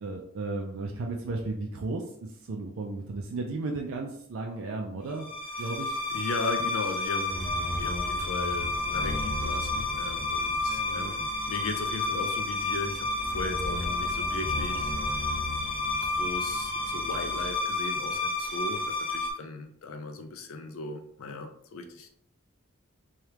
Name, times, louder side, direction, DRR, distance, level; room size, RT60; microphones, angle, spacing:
voice 1, 0.0-5.3 5.6-6.0 10.6-11.1, right 3 dB, 75° right, 1 dB, 0.4 m, -34 dB
sound 1, 5.1-19.3, left 2 dB, ahead, 1.1 m, -30 dB
voice 2, 6.1-15.2 15.8-22.1, left 3 dB, 85° left, 6 dB, 0.5 m, -37 dB
sound 2, 6.6-17.6, right 3 dB, 15° right, 0.6 m, -43 dB
3.3 x 2.3 x 2.9 m, 0.66 s
head